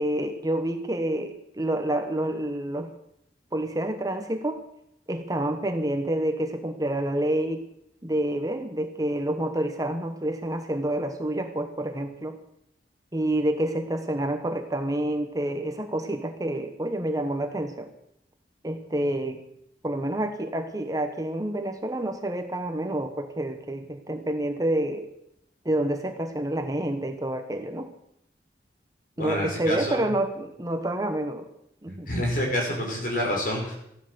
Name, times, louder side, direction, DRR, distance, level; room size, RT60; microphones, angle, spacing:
voice 1, 0.0-2.9 3.5-4.6 5.1-7.6 8.0-12.4 13.1-17.9 18.6-19.4 19.8-25.1 25.6-27.9 29.2-31.5 31.8-32.1, right 1 dB, 20° right, 6 dB, 1.1 m, -28 dB
voice 2, 29.2-30.1 31.9-33.7, equal, 50° left, 0 dB, 5.4 m, -28 dB
14.5 x 11.5 x 6.9 m, 0.76 s
head